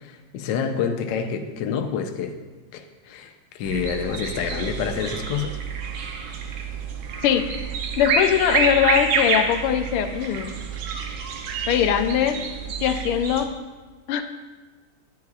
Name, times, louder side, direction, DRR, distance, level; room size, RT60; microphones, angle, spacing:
voice 1, 0.3-2.3 2.7-3.3 3.5-5.6, left 6 dB, 70° left, 5 dB, 1.2 m, -27 dB
sound 1, 3.6-13.5, right 5 dB, 75° right, 1.5 m, -28 dB
voice 2, 7.2-7.5 8.0-10.5 11.7-12.4 12.8-13.5 14.1-14.2, left 9 dB, 90° left, 7 dB, 1.5 m, -21 dB
10.5 x 9.4 x 2.4 m, 1.3 s
omnidirectional pair, 2.4 m